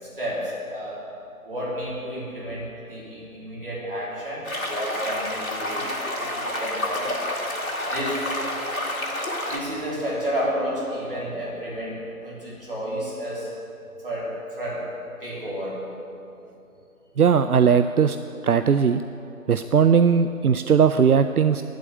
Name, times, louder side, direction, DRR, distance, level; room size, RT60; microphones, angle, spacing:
voice 1, 0.0-1.0 1.5-5.9 6.2-7.2 7.9-8.3 9.4-13.5 14.0-14.9 15.2-15.8, equal, 40° right, -7 dB, 3.6 m, -31 dB
sound 1, 4.4-9.6, left 1 dB, 70° left, 2.2 m, -29 dB
voice 2, 17.2-18.2 18.4-19.0 19.5-21.6, right 7 dB, 80° right, 10 dB, 0.5 m, -18 dB
9.1 x 8.7 x 8.7 m, 2.8 s
figure-of-eight pair, 170°, 44 cm